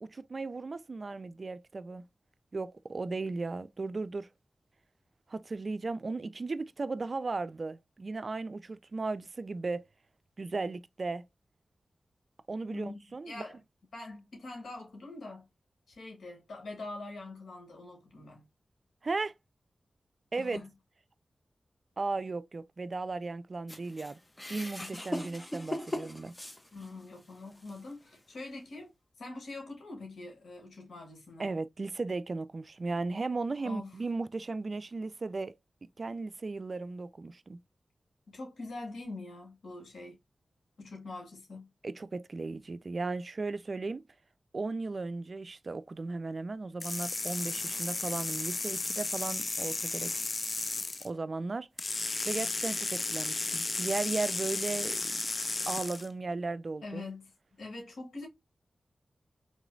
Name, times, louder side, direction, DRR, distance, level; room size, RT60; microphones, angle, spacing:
voice 1, 0.0-2.0 2.5-4.3 5.3-9.9 10.4-11.2 12.5-13.4 19.0-19.3 20.3-20.6 22.0-24.2 24.5-26.3 31.4-35.5 36.0-37.6 41.8-44.0 44.5-50.1 51.0-51.7 52.2-55.2 55.7-57.0, right 3 dB, 55° right, 0.4 m, -36 dB
voice 2, 12.7-13.6 13.9-15.4 15.9-18.4 20.4-20.7 24.8-25.0 26.7-31.5 33.6-34.0 38.3-40.2 40.8-41.7 56.8-57.3 57.6-58.3, left 2 dB, 85° left, 1.6 m, -44 dB
sound 1, 23.7-27.1 27.7-27.8 28.7-28.8, left 1 dB, 20° left, 0.9 m, -39 dB
sound 2, 46.8-51.1 51.8-56.1, left 3 dB, 45° left, 0.3 m, -34 dB
3.8 x 3.0 x 2.6 m
cardioid pair, 50°, 0 cm